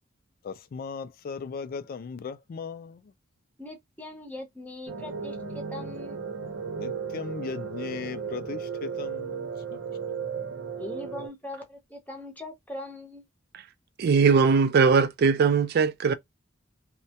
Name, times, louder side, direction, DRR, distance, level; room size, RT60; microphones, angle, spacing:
voice 1, 0.4-3.0 6.8-9.5, left 5 dB, 45° left, 0.3 m, -37 dB
voice 2, 3.6-6.2 10.8-13.2, left 1 dB, 10° left, 0.6 m, -40 dB
sound 1, 4.9-11.3, right 6 dB, 65° right, 0.7 m, -35 dB
voice 3, 14.0-16.1, right 5 dB, 50° right, 0.4 m, -20 dB
2.3 x 2.1 x 2.7 m
head